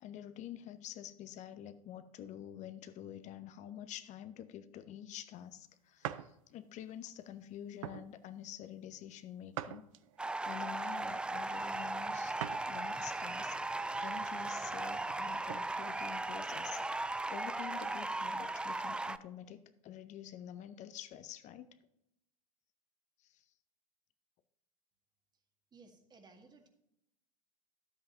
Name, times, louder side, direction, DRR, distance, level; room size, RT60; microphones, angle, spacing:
voice 1, 0.0-9.9 10.5-12.4 12.7-13.5 14.0-21.8 23.2-23.4, left 11 dB, 40° left, 11 dB, 0.8 m, -48 dB
sound 1, 6.0-6.3 6.9-7.1 7.8-8.1 9.5-10.3 12.4-12.7 13.2-13.3 15.0-15.7, right 12 dB, 65° right, 0.5 m, -42 dB
sound 2, 10.2-19.2, right 2 dB, 5° right, 0.3 m, -37 dB
voice 2, 25.7-26.7, right 4 dB, 25° right, 4 dB, 1.8 m, -59 dB
12.5 x 8.0 x 2.9 m, 0.82 s
hypercardioid pair, 80°, 18 cm